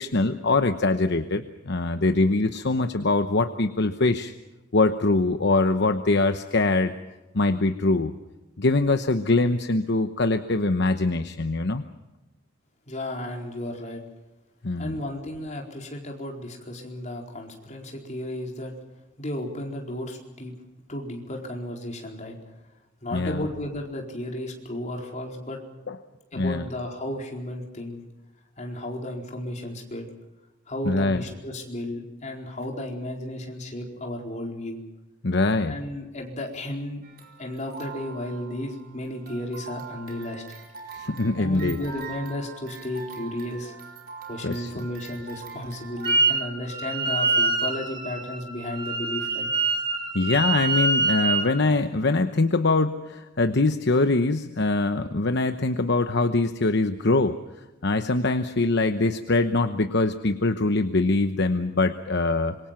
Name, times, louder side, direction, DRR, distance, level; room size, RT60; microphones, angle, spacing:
voice 1, 0.0-4.3 4.7-7.0 7.3-8.1 8.6-11.8 14.6-15.0 23.1-23.4 25.9-26.0 26.4-26.6 30.8-31.2 35.2-35.8 40.9-41.8 44.4-44.7 50.1-57.4 57.8-62.6, left 2 dB, 60° left, 9 dB, 1.0 m, -23 dB
voice 2, 12.9-14.0 14.8-18.7 19.2-20.5 20.9-22.4 23.0-25.6 26.3-28.0 28.6-30.0 30.7-34.8 35.6-37.0 37.4-40.6 41.4-43.7 44.3-49.5, left 1 dB, 35° left, 1 dB, 4.5 m, -33 dB
sound 1, 37.0-46.2, right 5 dB, 45° right, 4.6 m, -42 dB
Wind instrument woodwind instrument, 46.0-46.4 46.7-51.5, right 3 dB, 25° right, 3.1 m, -25 dB
26.0 x 23.0 x 5.9 m, 1.1 s
head